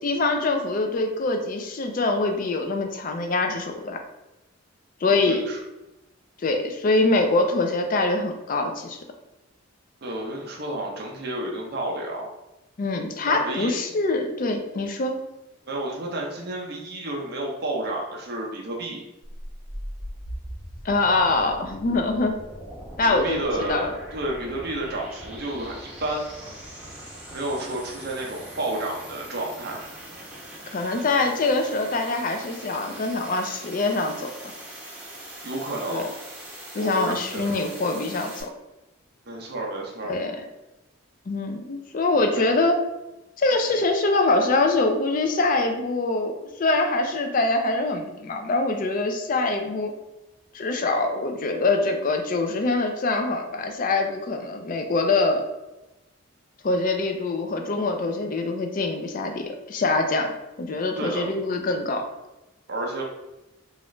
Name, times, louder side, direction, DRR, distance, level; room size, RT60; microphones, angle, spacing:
voice 1, 0.0-4.0 5.0-5.5 6.4-9.0 12.8-15.2 20.8-22.4 23.0-23.9 30.7-34.3 35.9-36.1 36.7-38.5 40.0-40.4 41.3-42.8 43.4-49.9 50.5-55.4 56.6-60.3 60.6-62.0, left 2 dB, 40° left, 4 dB, 0.4 m, -24 dB
voice 2, 5.0-5.6 10.0-12.3 13.3-13.7 15.7-19.0 23.0-26.2 27.3-29.9 35.4-36.1 36.7-37.6 39.3-40.2 42.3-42.4 61.0-61.3 62.7-63.0, right 1 dB, 50° right, -1 dB, 0.6 m, -31 dB
sound 1, 19.2-38.4, right 1 dB, 5° right, 1.0 m, -41 dB
3.1 x 2.4 x 3.0 m, 0.99 s
head